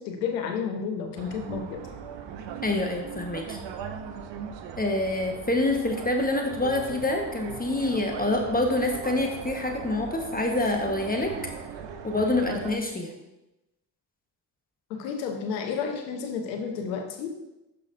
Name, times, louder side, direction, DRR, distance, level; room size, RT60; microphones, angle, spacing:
voice 1, 0.0-2.0 14.9-17.4, left 6 dB, 90° left, 4 dB, 0.9 m, -31 dB
sound 1, 1.2-12.8, right 7 dB, 60° right, 0.9 m, -39 dB
voice 2, 2.6-3.6 4.8-11.3 12.0-13.1, left 2 dB, 20° left, 2 dB, 1.2 m, -26 dB
10.5 x 5.7 x 2.6 m, 0.95 s
hypercardioid pair, 45°, 49 cm